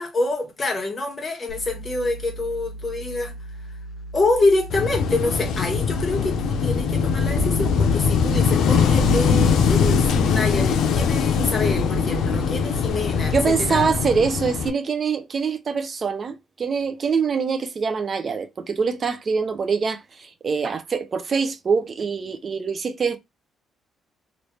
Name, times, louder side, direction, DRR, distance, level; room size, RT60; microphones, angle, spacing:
voice 1, 0.0-3.3 4.1-13.9, left 2 dB, 35° left, 1.4 m, -26 dB
sound 1, 1.5-12.9, right 1 dB, 55° left, 1.0 m, -37 dB
Wind / Waves surf, 4.7-14.7, left 6 dB, 80° left, 0.6 m, -21 dB
voice 2, 13.3-23.2, right 5 dB, 45° right, 0.4 m, -24 dB
3.1 x 2.5 x 3.1 m
cardioid pair, 90°, 0 cm